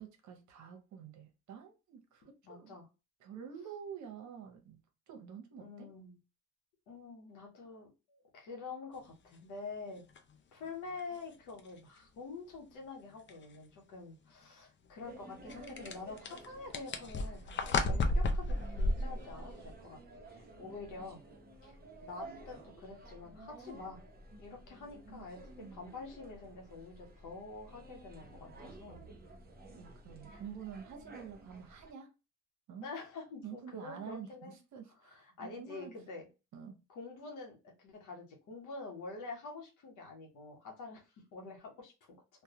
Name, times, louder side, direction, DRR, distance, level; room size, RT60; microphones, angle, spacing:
voice 1, 0.0-2.8 3.2-4.8 5.1-5.9 25.6-25.8 29.8-32.1 32.7-32.9 33.4-35.9 36.5-36.8, right 7 dB, 70° right, 0.8 m, -48 dB
voice 2, 2.4-2.8 5.6-6.2 6.9-10.0 10.5-20.0 20.3-21.2 21.6-24.0 24.4-29.0 30.3-30.4 32.8-34.6 35.0-36.3 36.9-41.9, left 4 dB, 85° left, 0.9 m, -47 dB
sound 1, 10.2-10.3 11.0-11.1 11.6-11.7 13.3-13.4 15.5-19.7, left 2 dB, 40° left, 0.5 m, -32 dB
sound 2, 15.0-31.9, right 2 dB, 30° right, 0.8 m, -53 dB
2.3 x 2.2 x 2.8 m
cardioid pair, 90°, 30 cm